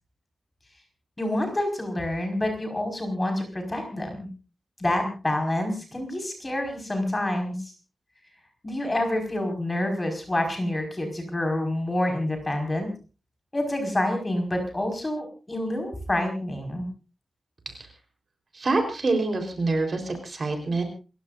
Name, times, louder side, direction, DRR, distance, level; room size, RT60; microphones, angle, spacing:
voice 1, 1.2-4.3 4.8-7.7 8.6-12.9 13.5-16.9, left 1 dB, 15° left, 4 dB, 5.1 m, -27 dB
voice 2, 18.5-20.8, right 3 dB, 40° right, 5 dB, 3.9 m, -26 dB
28.0 x 15.5 x 2.6 m, 0.34 s
wide cardioid pair, 175°, 0 cm